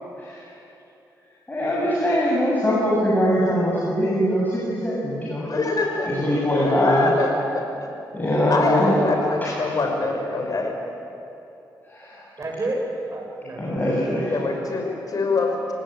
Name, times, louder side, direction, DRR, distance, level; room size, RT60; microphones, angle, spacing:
voice 1, 1.5-5.5 6.0-7.1 8.1-8.9 9.4-9.5 11.9-12.2 13.6-14.3, equal, 25° left, -6 dB, 7.2 m, -22 dB
voice 2, 5.4-7.9 8.5-10.7 14.3-15.7, left 3 dB, 50° left, 2 dB, 5.9 m, -25 dB
voice 3, 8.8-9.2 12.4-13.8 14.1-14.5, right 2 dB, 40° right, 0 dB, 7.7 m, -30 dB
28.0 x 19.0 x 9.1 m, 2.9 s
cardioid pair, 75°, 8 cm